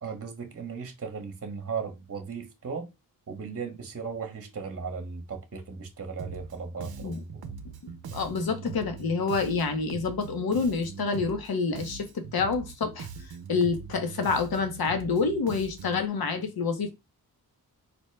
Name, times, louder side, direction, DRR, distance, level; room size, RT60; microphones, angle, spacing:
voice 1, 0.0-2.9 3.3-7.5, right 5 dB, 35° right, 0.9 m, -37 dB
Bass guitar, 6.2-6.5 6.8-11.5 11.7-16.1, right 6 dB, 70° right, 0.6 m, -41 dB
voice 2, 8.1-16.9, left 4 dB, 70° left, 0.9 m, -28 dB
4.4 x 2.1 x 3.2 m
cardioid pair, 60°, 38 cm